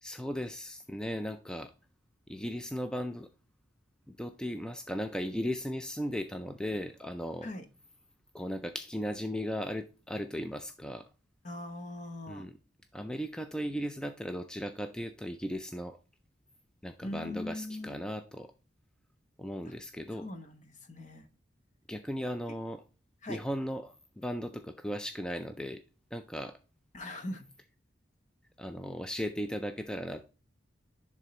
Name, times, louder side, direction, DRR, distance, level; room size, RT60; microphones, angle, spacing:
voice 1, 0.0-1.7 2.3-3.3 4.1-7.5 8.3-11.1 12.3-12.5 12.9-16.0 16.8-18.5 19.4-20.3 21.9-22.8 23.3-25.8 26.1-26.6 28.6-30.3, equal, 5° left, 7 dB, 0.3 m, -37 dB
voice 2, 11.4-12.5 17.0-18.0 19.7-19.8 20.2-21.3 23.2-23.4 26.9-27.5, left 1 dB, 40° left, 7 dB, 1.0 m, -41 dB
11.0 x 3.7 x 3.1 m, 0.33 s
head